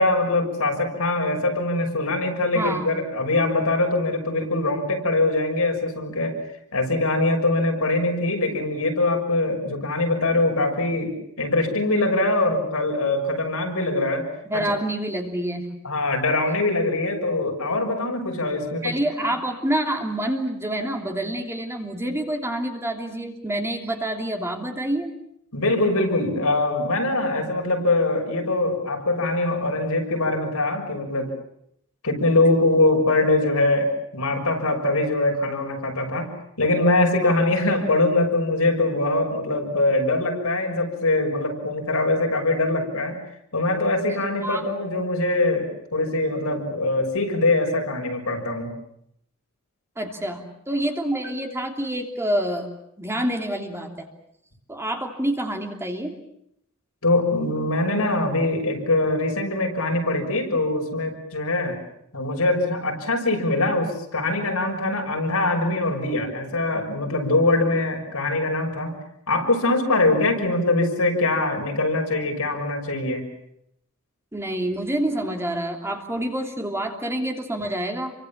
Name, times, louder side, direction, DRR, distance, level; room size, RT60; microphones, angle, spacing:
voice 1, 0.0-6.4 6.7-14.3 14.5-14.6 15.8-18.9 25.5-31.3 32.0-43.2 43.5-48.7 57.0-61.8 62.1-69.0 69.3-73.2, left 2 dB, 75° left, 2 dB, 6.4 m, -23 dB
voice 2, 2.5-2.9 14.5-15.7 18.8-25.1 37.2-37.4 44.4-44.6 50.0-52.7 53.0-54.1 54.7-56.1 74.3-78.1, right 1 dB, 10° right, 3 dB, 3.1 m, -27 dB
29.0 x 24.5 x 7.4 m, 0.75 s
head